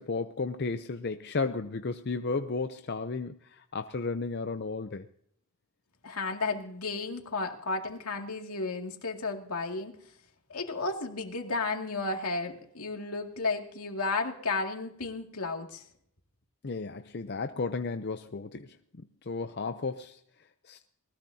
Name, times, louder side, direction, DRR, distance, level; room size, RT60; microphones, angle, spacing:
voice 1, 0.0-5.1 16.6-20.2 20.6-20.8, left 4 dB, 50° left, 8 dB, 0.6 m, -34 dB
voice 2, 6.0-9.9 10.5-15.9, left 3 dB, 80° left, 2 dB, 2.3 m, -33 dB
20.0 x 19.5 x 2.8 m, 0.66 s
head